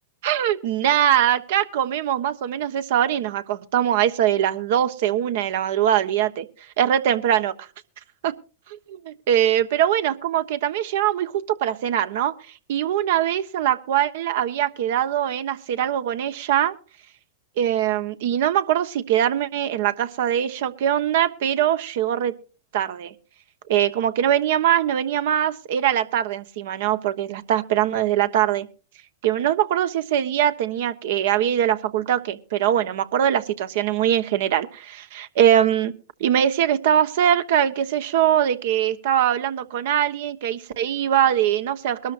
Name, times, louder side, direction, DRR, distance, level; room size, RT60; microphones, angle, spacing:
voice 1, 0.2-6.5 6.8-7.7 8.2-8.3 9.1-12.3 12.7-16.7 17.6-22.3 22.7-23.1 23.7-28.7 29.2-35.9 36.2-42.1, right 10 dB, 65° right, 10 dB, 1.1 m, -22 dB
22.5 x 12.5 x 2.6 m, 0.35 s
hypercardioid pair, 105°, 0 cm